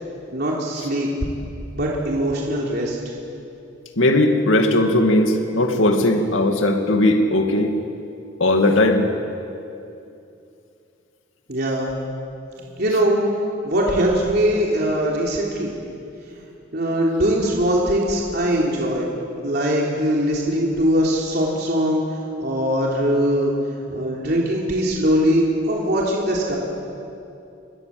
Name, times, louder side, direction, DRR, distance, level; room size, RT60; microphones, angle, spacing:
voice 1, 0.3-1.1 1.8-3.0 11.5-11.9 12.8-13.2 13.6-15.7 16.7-19.1 19.4-22.0 22.4-23.5 23.9-26.6, equal, 55° right, -3 dB, 3.6 m, -21 dB
voice 2, 4.0-7.7 8.4-9.1, left 1 dB, 90° left, 4 dB, 2.3 m, -18 dB
28.5 x 23.5 x 7.9 m, 2.7 s
head